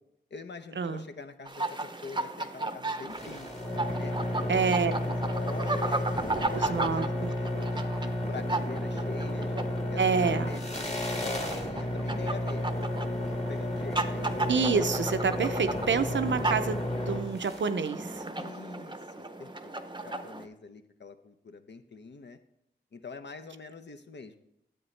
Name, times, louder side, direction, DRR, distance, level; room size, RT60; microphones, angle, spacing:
voice 1, 0.3-3.5 4.0-4.5 4.8-6.2 6.4-9.5 9.9-14.3 18.4-22.4 22.9-24.3, left 4 dB, 65° left, 8 dB, 0.7 m, -45 dB
sound 1, 1.5-20.5, right 2 dB, 25° right, 0.6 m, -36 dB
sound 2, 3.1-17.7, left 1 dB, 35° left, 1.5 m, -32 dB
voice 2, 4.5-4.9 6.5-7.3 10.0-10.5 14.5-16.8 17.1-18.3, right 5 dB, 75° right, 9 dB, 0.6 m, -27 dB
9.9 x 7.9 x 3.2 m, 0.80 s
cardioid pair, 50°, 19 cm